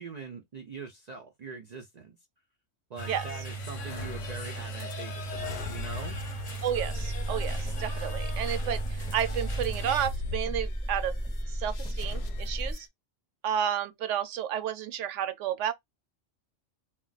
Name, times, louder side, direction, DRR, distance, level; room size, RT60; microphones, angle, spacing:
voice 1, 0.0-2.2 2.9-6.2, right 4 dB, 50° right, 0.5 m, -43 dB
sound 1, 3.0-10.1, right 2 dB, 35° left, 0.8 m, -38 dB
sound 2, 3.6-12.9, left 5 dB, 65° left, 0.8 m, -43 dB
voice 2, 6.6-11.1 11.5-12.9 13.4-15.7, right 9 dB, 75° right, 0.9 m, -31 dB
sound 3, 6.7-12.7, equal, 5° left, 0.6 m, -34 dB
2.4 x 2.2 x 3.9 m
omnidirectional pair, 1.3 m